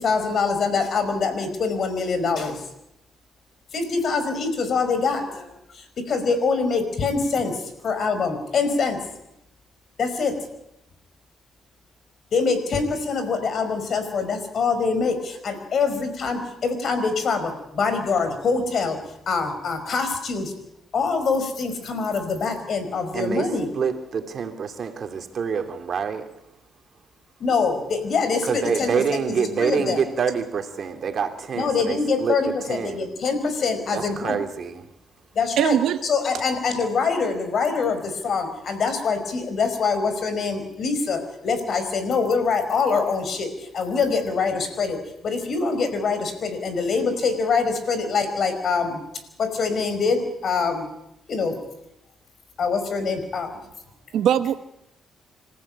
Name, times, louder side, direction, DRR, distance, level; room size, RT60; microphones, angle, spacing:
voice 1, 0.0-2.6 3.7-9.0 10.0-10.4 12.3-19.0 19.3-20.5 20.9-23.7 27.4-30.0 31.6-34.4 35.3-49.0 49.4-50.9 51.3-51.6 52.6-53.5, left 4 dB, 55° left, 9 dB, 5.1 m, -24 dB
voice 2, 23.1-23.4 23.8-26.2 28.5-33.0 33.9-34.8, right 6 dB, 55° right, 6 dB, 2.6 m, -26 dB
voice 3, 35.6-36.0 54.1-54.6, right 10 dB, 75° right, 11 dB, 1.3 m, -20 dB
26.5 x 15.0 x 8.6 m, 0.83 s
cardioid pair, 90°, 0 cm